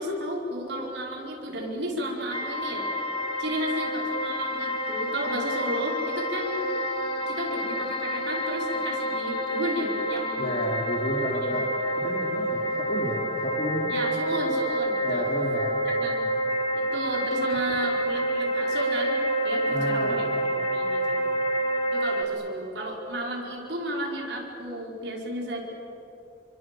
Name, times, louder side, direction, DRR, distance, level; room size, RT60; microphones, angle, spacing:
voice 1, 0.0-2.9 3.4-6.7 7.3-10.7 11.4-11.6 13.9-15.2 16.0-16.2 16.9-21.3 21.9-25.6, right 1 dB, 75° right, -1 dB, 5.1 m, -33 dB
sound 1, 2.3-22.2, right 1 dB, 30° left, 2.3 m, -28 dB
voice 2, 10.4-11.7 12.0-13.9 15.0-15.8 19.7-20.3, equal, 45° left, -3 dB, 3.4 m, -31 dB
28.5 x 25.0 x 7.8 m, 2.9 s
head